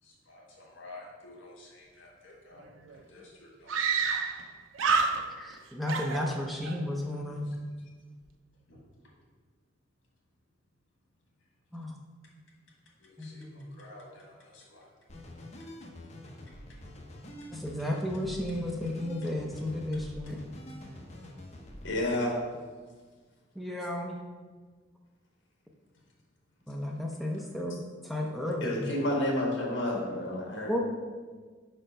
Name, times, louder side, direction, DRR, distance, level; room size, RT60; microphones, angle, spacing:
voice 1, 0.0-4.2 7.2-7.6 8.7-9.1 13.0-14.9 19.9-20.0 21.2-21.3 25.9-26.0 27.3-27.4, left 2 dB, 85° left, -2 dB, 1.6 m, -52 dB
Screaming, 2.6-2.7 2.9-3.0 3.7-4.5 4.7-5.5 5.9-6.8, right 5 dB, 85° right, 0.5 m, -28 dB
voice 2, 5.4-7.5 11.7-11.9 13.2-13.7 17.5-20.4 23.6-24.2 26.7-27.8 28.0-28.8 30.7-30.8, left 1 dB, ahead, -1 dB, 0.5 m, -33 dB
sound 1, 15.1-21.9, left 1 dB, 35° left, 0.7 m, -46 dB
voice 3, 21.8-22.3 28.6-30.8, left 1 dB, 70° left, -1 dB, 1.6 m, -30 dB
5.0 x 4.4 x 5.1 m, 1.5 s
head